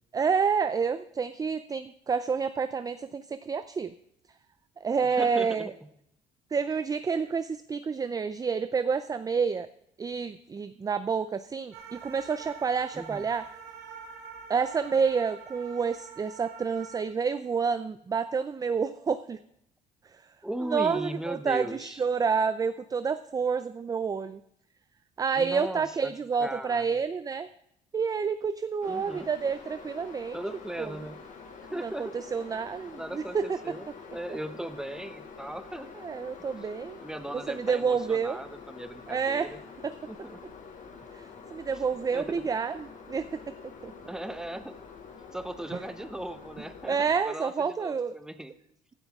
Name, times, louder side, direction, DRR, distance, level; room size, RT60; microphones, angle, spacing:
voice 1, 0.1-3.9 4.8-5.7 6.5-9.7 10.0-13.5 14.5-19.4 20.1-20.2 20.7-24.4 25.2-27.5 27.9-30.4 30.8-30.9 31.8-33.6 36.0-37.0 37.3-38.4 39.1-39.5 39.8-39.9 41.1-43.9 45.7-45.8 46.9-48.2, right 5 dB, 20° right, 13 dB, 0.4 m, -29 dB
voice 2, 5.0-5.7 12.9-13.3 20.4-22.0 25.3-26.1 26.4-27.0 28.9-29.3 30.3-31.2 31.7-32.2 32.9-33.9 34.1-35.9 37.0-39.6 40.1-40.4 42.1-42.4 44.1-44.8 45.3-47.0 47.2-48.5, right 1 dB, 5° right, 10 dB, 1.0 m, -38 dB
sound 1, 11.7-17.0, right 6 dB, 85° right, 2.0 m, -46 dB
sound 2, 28.8-47.2, left 5 dB, 50° left, 2.3 m, -47 dB
16.0 x 12.0 x 3.6 m, 0.76 s
cardioid pair, 110°, 17 cm